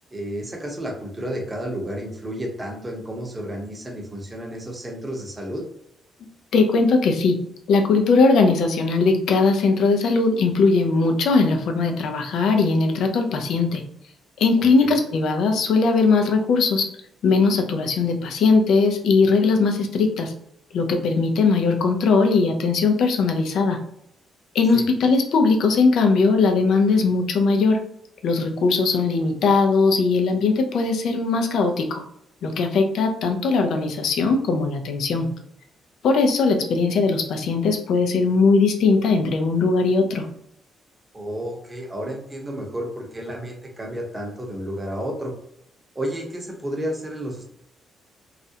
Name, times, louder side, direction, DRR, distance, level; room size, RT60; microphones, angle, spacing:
voice 1, 0.1-5.6 14.6-15.0 24.7-24.9 41.1-45.3 45.9-47.4, equal, 20° right, 0 dB, 0.8 m, -31 dB
voice 2, 6.5-7.4 7.7-13.8 14.4-16.9 17.2-20.3 20.7-23.8 24.5-27.8 28.2-32.0 32.4-35.3 36.0-40.3, left 4 dB, 75° left, 5 dB, 0.4 m, -19 dB
2.4 x 2.0 x 2.7 m, 0.72 s
cardioid pair, 90°, 0 cm